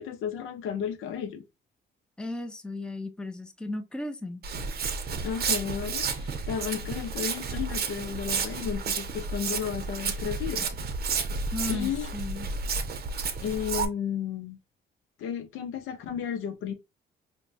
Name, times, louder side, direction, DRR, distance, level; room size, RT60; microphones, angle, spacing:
voice 1, 0.0-1.4 5.2-10.7 11.7-12.1 13.4-14.6 15.2-16.7, left 8 dB, 85° left, 0.6 m, -33 dB
voice 2, 2.2-4.5 11.5-12.5, left 2 dB, 5° left, 0.5 m, -35 dB
Walk footsteps, 4.4-13.8, right 4 dB, 50° right, 0.6 m, -31 dB
4.4 x 2.1 x 2.5 m
cardioid pair, 90°, 20 cm